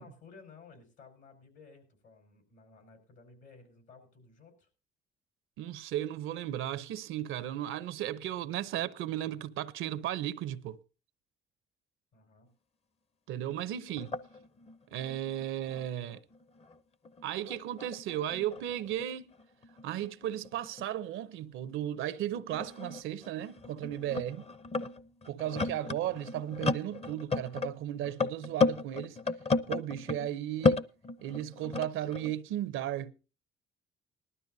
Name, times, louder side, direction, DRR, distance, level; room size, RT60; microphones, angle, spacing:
voice 1, 0.0-4.7 12.1-12.5, left 4 dB, 75° left, 5.1 m, -56 dB
voice 2, 5.6-10.8 13.3-14.2 14.9-16.2 17.2-19.3 19.8-24.5 25.3-29.2 29.7-30.8 31.2-33.1, right 12 dB, 90° right, 0.7 m, -35 dB
sound 1, 13.5-13.6 13.9-16.8 17.0-20.8 21.7-21.8 22.5-30.3 30.6-32.3, left 3 dB, 30° left, 0.7 m, -34 dB
19.5 x 12.5 x 2.7 m
cardioid pair, 90°, 20 cm